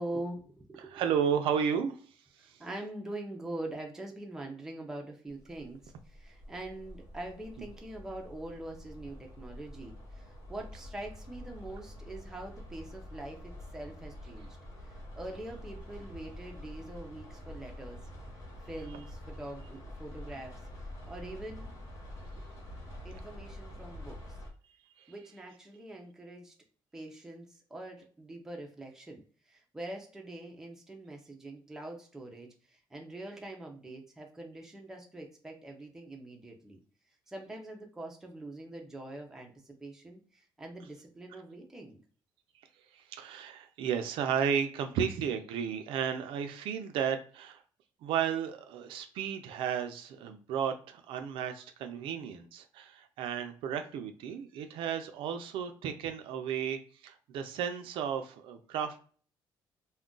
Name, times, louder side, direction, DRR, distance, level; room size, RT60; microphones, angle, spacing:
voice 1, 0.0-1.1 2.4-14.5 14.8-18.0 18.7-21.7 22.3-22.4 23.0-24.4 25.1-26.5 26.9-36.8 37.3-42.0, right 1 dB, 5° right, 1 dB, 0.5 m, -44 dB
voice 2, 0.8-2.0 2.4-2.5 25.0-25.1 42.9-47.6 48.0-59.0, right 8 dB, 80° right, 7 dB, 0.4 m, -33 dB
sound 1, 5.3-24.5, left 1 dB, 40° left, 1.0 m, -47 dB
2.4 x 2.1 x 3.7 m, 0.43 s
cardioid pair, 175°, 9 cm